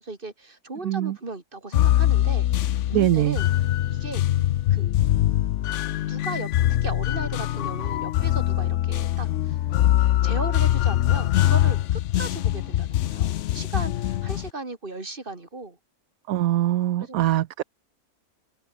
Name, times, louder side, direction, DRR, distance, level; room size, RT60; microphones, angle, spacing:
voice 1, 0.0-3.5 3.9-4.2 4.7-4.9 6.1-9.6 10.2-15.8 17.0-17.2, right 3 dB, 35° right, 3.1 m, -37 dB
voice 2, 0.8-1.2 2.9-3.4 16.3-17.6, right 13 dB, 70° right, 1.1 m, -22 dB
sound 1, 1.7-14.5, left 13 dB, 65° left, 0.8 m, -23 dB
open air
omnidirectional pair, 1.6 m